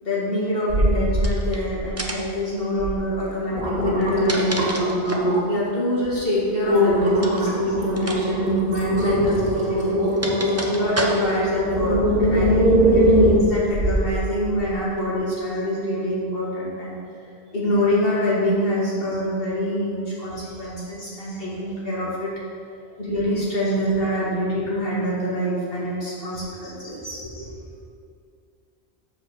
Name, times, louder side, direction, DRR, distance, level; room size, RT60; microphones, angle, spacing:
voice 1, 0.0-4.8 5.5-9.4 9.6-10.0 10.6-17.0 17.5-22.3 23.0-27.2, equal, 65° left, -8 dB, 2.4 m, -25 dB
sound 1, 0.7-1.3 1.7-2.2 2.8-2.9 3.3-5.6 6.0-6.2 6.6-14.1 14.6-14.7, equal, 85° right, 2.2 m, -21 dB
sound 2, 1.2-1.6 2.0-2.4 3.9-5.4 7.2-7.5 8.0-8.2 8.5-8.6 9.6-11.5, right 1 dB, 15° right, 0.6 m, -29 dB
voice 2, 3.7-4.0 7.6-7.7 8.7-9.8 10.1-10.8 11.8-11.9 12.2-12.3 12.9-13.1 20.3-20.4 26.3-26.7 27.0-27.5, equal, 30° left, -8 dB, 1.9 m, -36 dB
7.5 x 5.0 x 6.5 m, 2.3 s
omnidirectional pair, 1.1 m